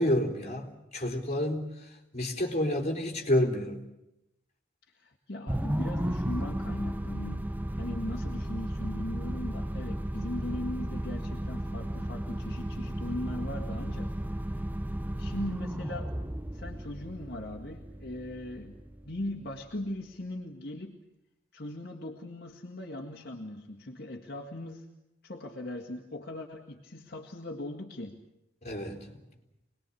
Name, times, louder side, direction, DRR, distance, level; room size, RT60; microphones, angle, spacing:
voice 1, 0.0-1.7 2.1-3.8 28.6-29.1, left 1 dB, 35° left, 3 dB, 3.7 m, -29 dB
voice 2, 4.9-14.4 15.2-16.1 16.5-21.0 21.5-24.9 25.2-28.1, left 1 dB, 55° left, 0 dB, 2.1 m, -39 dB
sound 1, 5.5-20.0, right 1 dB, 10° right, 0.8 m, -34 dB
26.0 x 20.5 x 8.5 m, 0.89 s
head